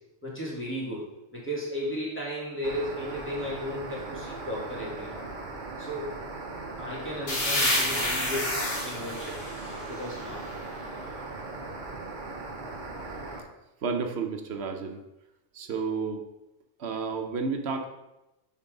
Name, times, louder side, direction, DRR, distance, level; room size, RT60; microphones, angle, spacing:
voice 1, 0.2-1.1 1.3-5.2 5.8-6.2 6.8-8.6 8.8-9.4 9.7-10.7, equal, 10° left, -6 dB, 2.2 m, -35 dB
sound 1, 2.6-13.4, right 3 dB, 45° right, 1.0 m, -39 dB
sound 2, 7.3-10.9, left 1 dB, 55° left, 1.8 m, -30 dB
voice 2, 13.8-15.0 15.5-16.2 16.8-17.9, right 5 dB, 65° right, 5 dB, 1.0 m, -31 dB
5.6 x 4.5 x 5.2 m, 0.94 s
omnidirectional pair, 1.2 m